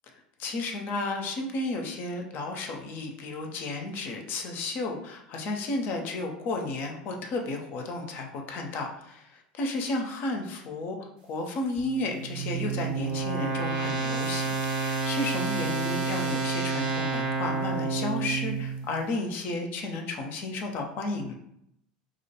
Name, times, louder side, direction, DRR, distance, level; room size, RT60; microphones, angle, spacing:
voice 1, 0.4-11.0 11.3-21.3, left 2 dB, 45° left, 2 dB, 0.4 m, -33 dB
sound 1, 11.8-18.9, right 4 dB, 65° right, 0.6 m, -29 dB
2.4 x 2.2 x 2.8 m, 0.77 s
figure-of-eight pair, 75°, 5 cm